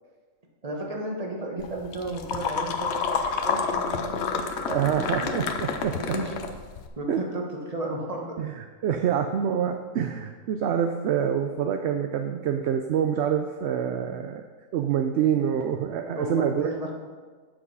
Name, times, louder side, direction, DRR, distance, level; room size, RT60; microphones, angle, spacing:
voice 1, 0.6-5.4 6.1-6.3 7.0-8.4 15.3-15.5 16.1-16.9, right 1 dB, 30° right, 0 dB, 1.4 m, -33 dB
sound 1, 1.6-6.9, left 5 dB, 60° left, 0.9 m, -29 dB
voice 2, 4.7-6.0 7.1-7.2 8.4-14.4 14.7-16.7, right 8 dB, 65° right, 6 dB, 0.7 m, -26 dB
7.9 x 6.2 x 5.4 m, 1.5 s
omnidirectional pair, 1.4 m